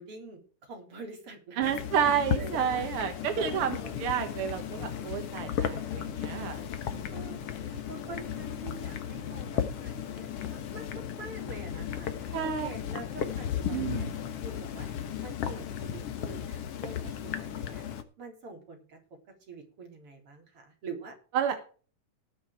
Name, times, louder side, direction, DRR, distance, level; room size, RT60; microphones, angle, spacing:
voice 1, 0.0-1.8 2.3-2.9 3.3-4.0 7.1-14.0 14.4-14.9 15.2-17.8 18.2-19.0 19.3-21.2 21.5-21.6, right 3 dB, 40° right, 2 dB, 4.6 m, -45 dB
sound 1, 1.6-18.0, left 9 dB, 55° left, 1.9 m, -35 dB
voice 2, 1.6-7.4 12.3-12.7 13.7-14.1 21.3-21.5, right 8 dB, 60° right, 7 dB, 1.6 m, -31 dB
19.0 x 6.3 x 4.6 m, 0.38 s
omnidirectional pair, 3.9 m